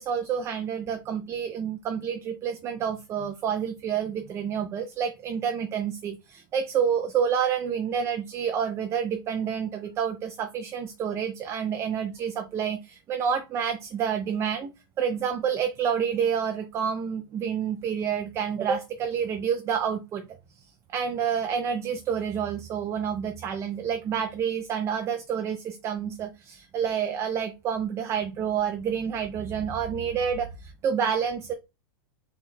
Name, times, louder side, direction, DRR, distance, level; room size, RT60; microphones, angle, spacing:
voice 1, 0.0-14.7 15.0-20.3 20.6-20.7 20.9-31.5, right 7 dB, 20° right, 0.3 m, -28 dB
4.2 x 2.2 x 3.8 m
supercardioid pair, 140°, 13 cm